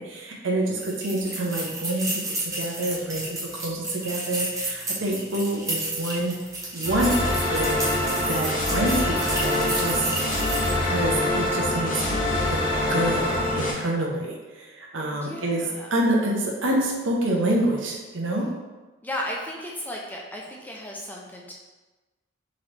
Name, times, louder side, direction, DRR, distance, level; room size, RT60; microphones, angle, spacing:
voice 1, 0.0-3.3 3.6-6.3 6.7-7.8 8.3-9.2 9.4-10.1 10.8-12.2 12.5-12.6 12.9-15.6 15.9-18.5, right 1 dB, 65° right, -1 dB, 0.7 m, -27 dB
sound 1, 0.8-10.9, right 2 dB, 15° right, 0.7 m, -32 dB
sound 2, 6.8-13.7, left 1 dB, 40° left, 0.7 m, -25 dB
voice 2, 15.1-15.9 19.0-21.5, left 1 dB, 10° left, -2 dB, 0.3 m, -35 dB
3.9 x 3.0 x 3.2 m, 1.2 s
head